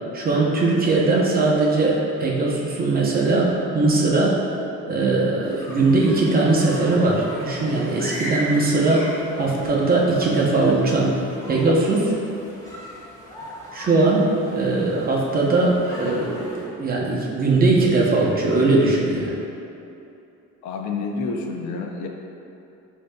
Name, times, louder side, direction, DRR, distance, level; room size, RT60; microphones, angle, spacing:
voice 1, 0.1-4.4 4.9-11.1 11.5-12.1 13.7-19.3, right 3 dB, 30° right, -3 dB, 0.7 m, -20 dB
sound 1, 5.4-16.6, equal, 10° left, 1.1 m, -38 dB
voice 2, 20.6-22.1, left 4 dB, 80° left, 2 dB, 0.5 m, -29 dB
8.0 x 2.7 x 2.2 m, 2.7 s
cardioid pair, 125°, 29 cm